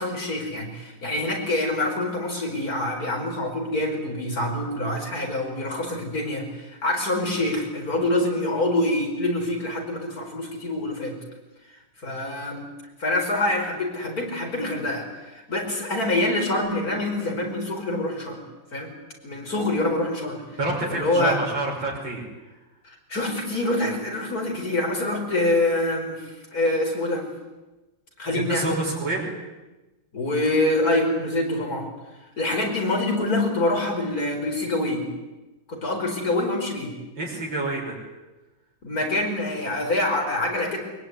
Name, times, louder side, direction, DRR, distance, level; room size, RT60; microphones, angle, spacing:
voice 1, 0.0-11.2 12.0-12.6 13.0-18.4 18.7-18.9 19.2-20.4 20.9-21.4 23.1-27.3 28.2-28.8 30.1-31.9 32.4-35.0 35.7-36.9 38.8-40.8, left 1 dB, 50° left, 2 dB, 5.7 m, -25 dB
voice 2, 20.6-22.6 28.3-29.4 37.2-37.9, right 2 dB, 80° right, -3 dB, 6.3 m, -28 dB
23.0 x 22.0 x 9.7 m, 1.1 s
omnidirectional pair, 2.0 m